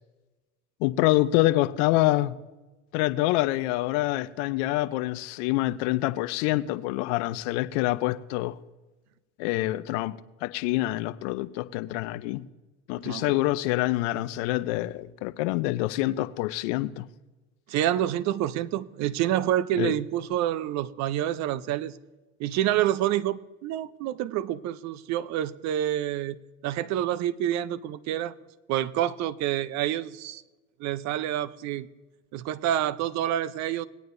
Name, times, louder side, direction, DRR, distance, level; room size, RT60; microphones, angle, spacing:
voice 1, 0.8-2.3 2.9-8.6 9.4-10.2 10.4-12.4 12.9-17.1 19.8-19.9, left 17 dB, 60° left, 0.6 m, -26 dB
voice 2, 17.7-22.0 22.4-26.4 26.6-28.3 28.7-30.4 30.8-31.9 32.3-33.8, right 12 dB, 45° right, 0.6 m, -28 dB
19.0 x 9.3 x 2.6 m
hypercardioid pair, 90°, 39 cm